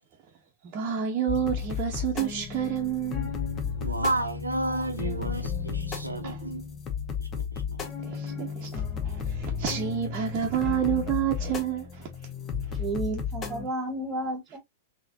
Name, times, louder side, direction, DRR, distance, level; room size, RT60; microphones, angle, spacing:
voice 1, 0.7-3.3 6.2-6.5 8.0-12.1 12.7-12.8, right 9 dB, 35° right, 0.8 m, -29 dB
sound 1, 1.3-13.7, left 6 dB, 25° left, 0.9 m, -33 dB
voice 2, 3.8-6.7 7.2-7.8, right 2 dB, 90° right, 0.7 m, -31 dB
voice 3, 12.8-14.6, right 2 dB, 20° right, 1.5 m, -32 dB
4.1 x 2.9 x 2.6 m
figure-of-eight pair, 100°, 0 cm